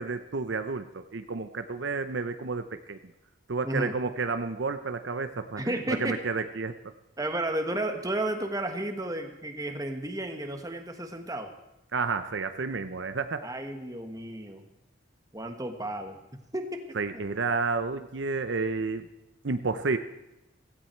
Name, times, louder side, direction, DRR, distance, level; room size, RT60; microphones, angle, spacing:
voice 1, 0.0-3.0 3.5-5.6 5.9-6.9 11.9-13.4 17.0-19.1 19.4-20.0, right 4 dB, 60° right, 9 dB, 0.7 m, -31 dB
voice 2, 3.6-4.0 5.6-6.2 7.2-11.5 13.4-14.7 15.3-16.2 16.5-17.2, right 1 dB, 20° right, 6 dB, 1.4 m, -33 dB
17.0 x 16.0 x 4.5 m, 0.93 s
head